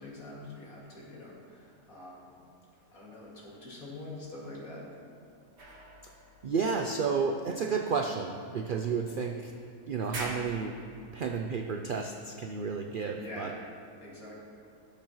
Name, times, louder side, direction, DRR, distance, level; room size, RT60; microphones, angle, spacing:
voice 1, 0.0-2.4 2.9-4.9 13.1-13.6 14.0-14.3, left 2 dB, 70° left, -5 dB, 2.7 m, -45 dB
sound 1, 5.6-7.5 8.3-8.4 9.1-9.7 10.0-11.6, right 1 dB, 50° right, 1.7 m, -45 dB
voice 2, 6.4-9.5 9.8-10.8 11.1-13.5, right 5 dB, 75° right, 3 dB, 0.4 m, -31 dB
17.0 x 6.9 x 3.1 m, 2.5 s
omnidirectional pair, 1.5 m